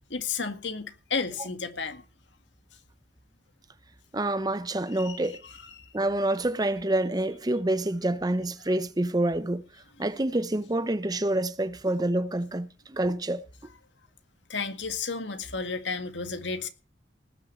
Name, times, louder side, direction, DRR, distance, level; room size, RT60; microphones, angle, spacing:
voice 1, 0.1-2.0 5.0-5.9 14.5-16.7, left 4 dB, 90° left, 2.0 m, -33 dB
voice 2, 4.1-5.4 5.9-9.7 10.0-13.4, right 1 dB, 20° right, 0.7 m, -27 dB
19.0 x 6.6 x 7.5 m
head